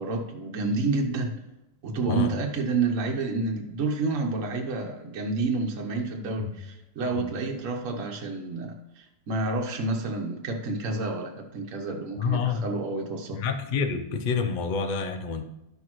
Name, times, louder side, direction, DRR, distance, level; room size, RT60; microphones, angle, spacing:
voice 1, 0.0-1.3 1.8-13.4, right 3 dB, 60° right, 1 dB, 1.3 m, -29 dB
voice 2, 12.2-12.6 13.3-15.4, left 5 dB, 80° left, 6 dB, 0.4 m, -28 dB
12.0 x 6.3 x 3.0 m, 0.94 s
omnidirectional pair, 1.7 m